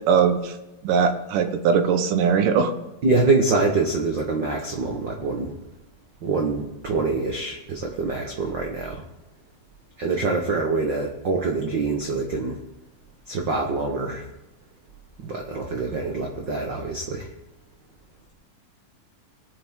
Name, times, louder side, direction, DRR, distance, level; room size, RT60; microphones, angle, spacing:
voice 1, 0.1-0.5 0.8-2.7, right 6 dB, 80° right, 8 dB, 2.5 m, -20 dB
voice 2, 3.0-5.5 6.2-9.0 10.0-12.6 13.3-14.2 15.2-17.3, right 3 dB, 60° right, 1 dB, 1.2 m, -25 dB
21.0 x 8.0 x 3.7 m, 0.95 s
omnidirectional pair, 3.8 m